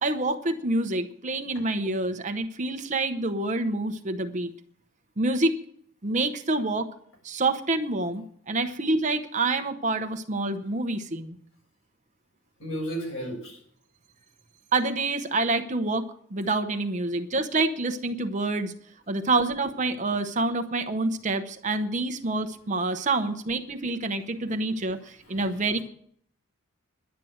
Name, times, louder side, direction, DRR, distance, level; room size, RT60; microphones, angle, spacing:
voice 1, 0.0-4.5 5.2-5.6 6.0-6.9 7.2-11.4 14.7-18.7 19.1-25.8, right 2 dB, 35° right, 8 dB, 0.8 m, -27 dB
voice 2, 12.6-13.6 25.3-25.8, right 1 dB, 70° left, -1 dB, 7.1 m, -34 dB
11.5 x 9.1 x 7.9 m, 0.64 s
head